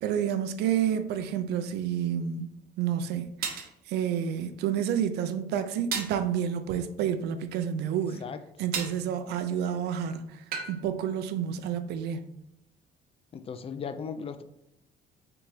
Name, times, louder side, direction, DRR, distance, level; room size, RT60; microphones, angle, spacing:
voice 1, 0.0-8.2 8.6-12.3, right 9 dB, 80° right, 0.5 m, -30 dB
sound 1, 2.3-2.4 3.4-3.7 5.9-6.2 8.7-9.0 10.5-10.8, right 6 dB, 60° right, 0.8 m, -32 dB
voice 2, 13.3-14.4, left 6 dB, 35° left, 0.4 m, -37 dB
3.9 x 3.4 x 3.2 m
cardioid pair, 110°, 17 cm